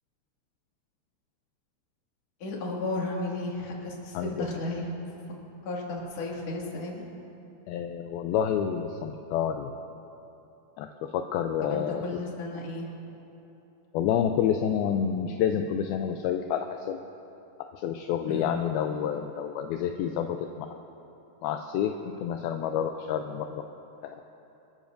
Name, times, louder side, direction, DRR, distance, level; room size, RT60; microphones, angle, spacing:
voice 1, 2.4-4.9 5.6-7.0 11.6-12.9 18.3-18.5, left 2 dB, 45° left, -3 dB, 2.8 m, -34 dB
voice 2, 4.1-4.5 7.7-9.7 10.8-10.9 11.1-12.3 13.9-17.0 17.7-20.7 21.4-23.6 24.0-24.3, left 8 dB, 80° left, 5 dB, 2.3 m, -29 dB
27.0 x 13.5 x 2.6 m, 2.9 s
omnidirectional pair, 4.7 m